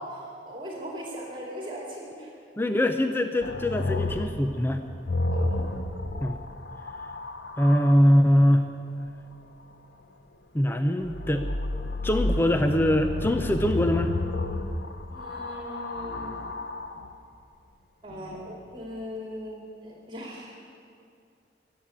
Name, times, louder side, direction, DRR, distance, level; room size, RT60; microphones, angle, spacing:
voice 1, 0.1-2.3 5.3-5.6 15.1-16.4 18.0-20.5, equal, 30° right, -2 dB, 2.2 m, -39 dB
voice 2, 2.6-4.8 6.2-6.4 7.6-8.7 10.5-11.5 12.0-14.1, equal, 15° left, 6 dB, 0.6 m, -22 dB
sound 1, 3.4-8.0 11.0-17.1 18.1-18.7, left 2 dB, 75° left, 0.9 m, -31 dB
21.0 x 7.5 x 8.9 m, 2.4 s
head